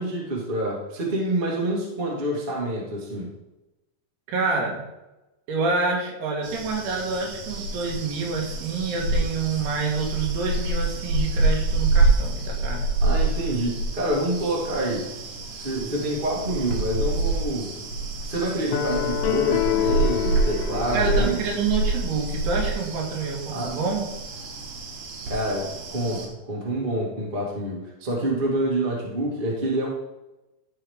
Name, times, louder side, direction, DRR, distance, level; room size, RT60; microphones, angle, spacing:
voice 1, 0.0-3.3 13.0-15.1 15.5-17.7 18.2-21.4 23.5-23.7 25.2-29.9, right 1 dB, 40° right, -3 dB, 0.7 m, -27 dB
voice 2, 4.3-4.8 5.5-12.9 20.9-24.0, right 4 dB, 85° right, 0 dB, 3.6 m, -27 dB
sound 1, 6.4-26.3, right 3 dB, 65° right, 2.4 m, -27 dB
sound 2, 18.7-22.0, left 12 dB, 85° left, 2.7 m, -27 dB
12.0 x 4.9 x 3.5 m, 0.99 s
omnidirectional pair, 4.6 m